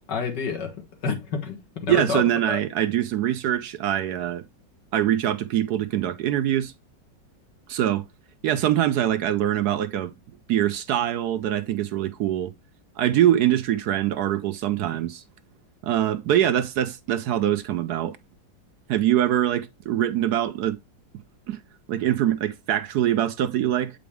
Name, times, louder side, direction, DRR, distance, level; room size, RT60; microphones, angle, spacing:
voice 1, 0.1-0.8 1.0-2.6, left 5 dB, 70° left, 2.1 m, -29 dB
voice 2, 1.9-4.4 4.9-6.7 7.7-8.0 8.4-10.1 10.5-12.5 13.0-15.2 15.8-18.2 18.9-20.8 21.5-21.6 21.9-23.9, right 11 dB, 70° right, 1.1 m, -23 dB
8.5 x 5.1 x 3.4 m
omnidirectional pair, 2.0 m